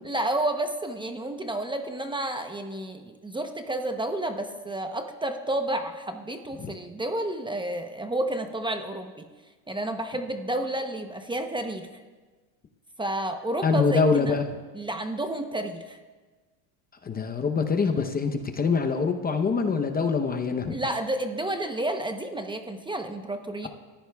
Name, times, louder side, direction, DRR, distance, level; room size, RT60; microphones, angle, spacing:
voice 1, 0.0-9.3 9.7-11.9 13.0-14.4 14.7-16.0 20.7-23.7, right 1 dB, 10° right, 6 dB, 0.8 m, -30 dB
voice 2, 13.6-14.5 17.0-20.7, left 5 dB, 20° left, 6 dB, 0.8 m, -24 dB
28.0 x 14.5 x 2.3 m, 1.3 s
supercardioid pair, 125°, 44 cm